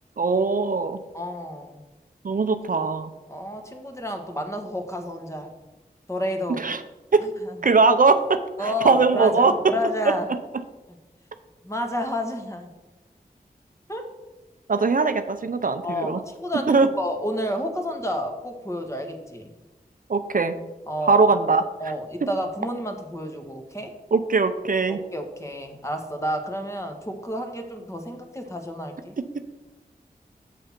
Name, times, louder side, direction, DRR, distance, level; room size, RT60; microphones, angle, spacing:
voice 1, 0.2-1.0 2.2-3.1 6.6-6.8 7.1-7.3 7.6-9.7 10.0-10.4 14.7-16.2 16.7-16.9 20.1-20.6 21.0-21.6 22.2-22.3 24.1-25.0, right 4 dB, 60° right, 10 dB, 0.6 m, -20 dB
voice 2, 1.1-1.8 3.3-5.5 6.1-6.6 7.4-7.6 8.6-10.3 11.6-12.7 13.9-14.1 14.8-14.9 15.8-16.7 17.0-19.5 20.9-21.2 21.8-23.9 24.9-29.1, equal, 20° left, 4 dB, 1.5 m, -30 dB
7.6 x 6.5 x 5.9 m, 1.1 s
wide cardioid pair, 65°, 16 cm